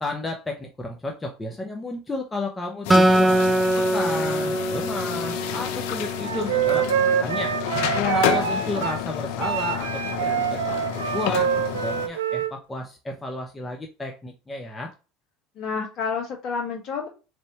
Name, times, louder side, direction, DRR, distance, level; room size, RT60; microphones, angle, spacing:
voice 1, 0.0-7.5 8.1-14.9, left 2 dB, 15° left, 1 dB, 0.9 m, -32 dB
sound 1, 2.8-12.1, left 9 dB, 70° left, 0.6 m, -30 dB
Acoustic guitar, 2.9-6.3, right 1 dB, 10° right, 0.5 m, -22 dB
Wind instrument woodwind instrument, 6.2-9.0 9.4-12.5, right 9 dB, 85° right, 0.4 m, -25 dB
voice 2, 7.9-8.6 15.6-17.1, left 6 dB, 55° left, 1 dB, 1.8 m, -29 dB
4.1 x 3.5 x 3.0 m, 0.31 s
hypercardioid pair, 80°, 0 cm